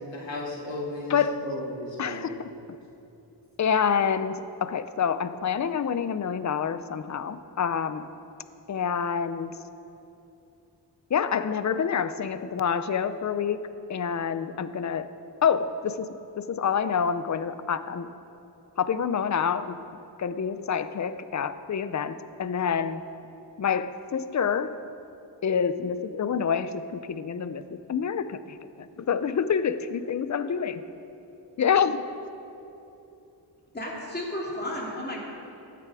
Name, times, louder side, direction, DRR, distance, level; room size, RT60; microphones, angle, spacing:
voice 1, 0.1-2.3, left 1 dB, 90° left, -2 dB, 2.2 m, -35 dB
voice 2, 1.1-1.4 2.0-2.4 2.7-2.8 3.6-8.0 8.7-9.6 11.1-13.6 13.9-15.1 15.4-16.1 16.4-18.1 18.8-19.8 20.2-23.1 23.6-24.8 25.4-27.6 27.9-30.8 31.6-32.1, left 7 dB, 40° left, 13 dB, 0.5 m, -27 dB
voice 3, 33.7-35.2, left 1 dB, 25° left, -2 dB, 2.4 m, -33 dB
15.5 x 9.5 x 4.8 m, 2.8 s
wide cardioid pair, 95°, 43 cm